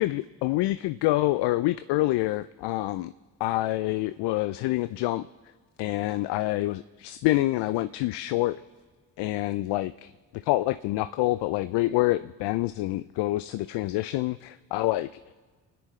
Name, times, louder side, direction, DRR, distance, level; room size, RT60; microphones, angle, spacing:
voice 1, 0.0-3.1 3.4-5.3 5.8-8.6 9.2-10.1 10.4-15.1, left 17 dB, 60° left, 13 dB, 0.5 m, -27 dB
28.5 x 10.0 x 3.2 m, 1.4 s
hypercardioid pair, 45°, 47 cm